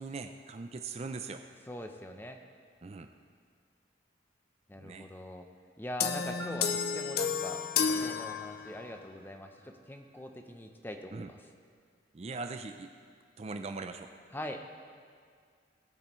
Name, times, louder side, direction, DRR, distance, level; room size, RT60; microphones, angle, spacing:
voice 1, 0.0-1.4 2.8-3.1 4.8-5.1 11.1-11.3 12.1-12.9 13.4-14.1, right 3 dB, 35° right, 7 dB, 0.4 m, -40 dB
voice 2, 1.7-2.4 4.7-5.5 5.8-7.6 8.0-11.4 14.3-14.6, equal, 10° left, 5 dB, 0.6 m, -42 dB
sound 1, 6.0-9.0, left 6 dB, 55° left, 0.5 m, -32 dB
sound 2, 6.4-10.2, right 3 dB, 75° right, 2.1 m, -50 dB
18.0 x 8.2 x 3.1 m, 2.1 s
head